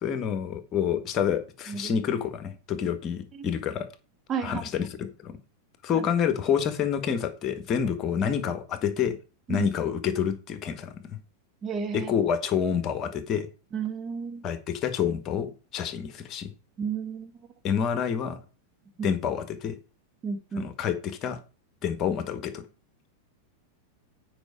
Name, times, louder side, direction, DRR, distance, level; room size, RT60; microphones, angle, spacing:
voice 1, 0.0-3.9 4.4-5.3 5.8-9.1 9.5-10.9 11.9-13.5 14.4-16.5 17.6-18.4 19.0-19.8 20.6-21.4 21.8-22.6, left 8 dB, 30° left, 10 dB, 1.5 m, -28 dB
voice 2, 4.3-4.6 6.0-6.1 9.5-9.7 11.6-12.1 13.7-14.4 16.8-17.3 19.0-19.1 20.2-20.7, right 6 dB, 25° right, 7 dB, 1.3 m, -32 dB
8.9 x 5.4 x 4.8 m, 0.33 s
figure-of-eight pair, 90°, 0 cm